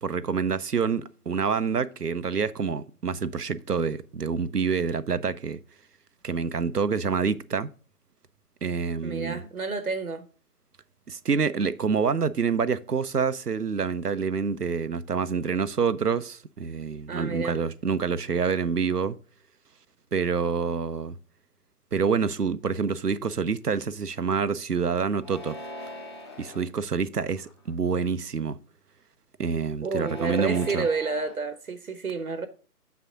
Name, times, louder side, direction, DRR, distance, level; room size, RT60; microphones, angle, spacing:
voice 1, 0.0-5.6 6.2-7.7 8.6-9.4 11.1-19.2 20.1-21.2 21.9-25.6 26.4-28.6 29.4-30.9, right 5 dB, 90° right, 0.7 m, -27 dB
voice 2, 9.0-10.3 17.1-17.6 29.8-32.5, right 4 dB, 65° right, 1.0 m, -30 dB
sound 1, 25.2-26.6 27.3-27.9 29.8-31.4, left 1 dB, 20° left, 1.0 m, -41 dB
7.3 x 5.9 x 3.7 m
figure-of-eight pair, 145°, 46 cm